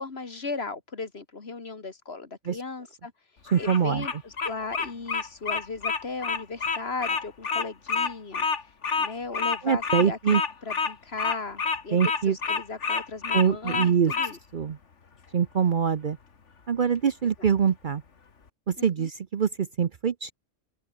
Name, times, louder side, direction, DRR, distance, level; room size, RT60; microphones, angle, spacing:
voice 1, 0.0-3.1 3.6-8.5 9.0-14.4 17.4-17.5 18.8-19.1, left 4 dB, 55° left, 2.3 m, -37 dB
Bird vocalization bird call bird song, 3.5-14.3, left 5 dB, 70° left, 2.1 m, -28 dB
voice 2, 3.5-4.0 9.6-10.4 11.9-12.4 13.3-14.1 14.5-14.8 15.3-16.2 16.7-18.0 18.7-20.3, right 7 dB, 45° right, 0.8 m, -24 dB
open air
omnidirectional pair, 1.3 m